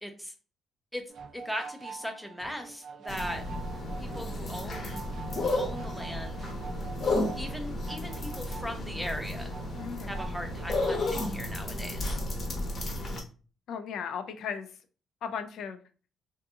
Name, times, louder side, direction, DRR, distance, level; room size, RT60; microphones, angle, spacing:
voice 1, 0.0-0.3 0.9-1.0 1.3-3.4 4.0-5.1 5.4-6.4 7.4-9.5 10.1-12.2, equal, ahead, 0.6 m, -39 dB
sound 1, 1.1-11.2, right 5 dB, 65° right, 0.4 m, -46 dB
sound 2, 3.1-13.2, left 2 dB, 50° left, 0.8 m, -33 dB
voice 2, 9.8-10.3 13.7-14.7 15.2-15.8, left 7 dB, 75° left, 0.4 m, -36 dB
2.7 x 2.5 x 2.4 m
cardioid pair, 90°, 0 cm